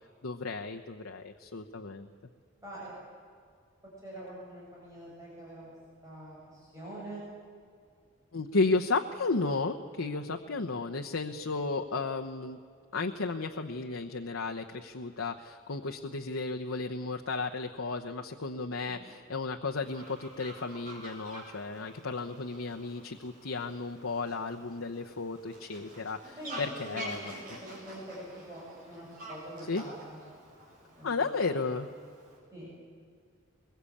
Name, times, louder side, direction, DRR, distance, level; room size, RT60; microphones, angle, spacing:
voice 1, 0.2-2.1 8.3-12.6 12.9-27.2 29.7-29.8 31.0-31.9, left 3 dB, 85° left, 3 dB, 1.0 m, -33 dB
voice 2, 2.6-2.9 4.0-5.7 6.0-7.2 18.8-19.0 26.4-30.2 30.9-31.6 32.5-32.7, right 1 dB, 15° right, -6 dB, 6.4 m, -45 dB
Fowl, 19.8-32.4, right 1 dB, 40° right, 7.7 m, -48 dB
22.0 x 22.0 x 8.6 m, 2.2 s
head